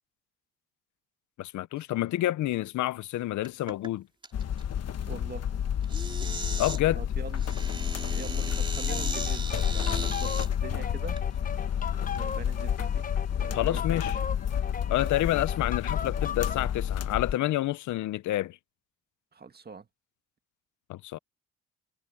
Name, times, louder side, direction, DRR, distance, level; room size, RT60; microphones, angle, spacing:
voice 1, 1.4-4.1 6.6-7.0 13.5-14.2 14.9-18.6 20.9-21.2, left 15 dB, 75° left, 0.7 m, -28 dB
sound 1, 3.4-3.9 4.2-4.6 5.8-6.8 7.4-10.5 11.2-11.3 12.0-12.3, right 2 dB, 15° right, 3.5 m, -37 dB
sound 2, 4.3-17.3, left 9 dB, 55° left, 1.3 m, -30 dB
voice 2, 5.1-5.6 7.0-7.4 8.0-11.2 12.2-14.2 19.3-19.9, right 5 dB, 30° right, 1.9 m, -43 dB
sound 3, 8.9-16.7, left 6 dB, 30° left, 0.6 m, -38 dB
cardioid pair, 90°, 30 cm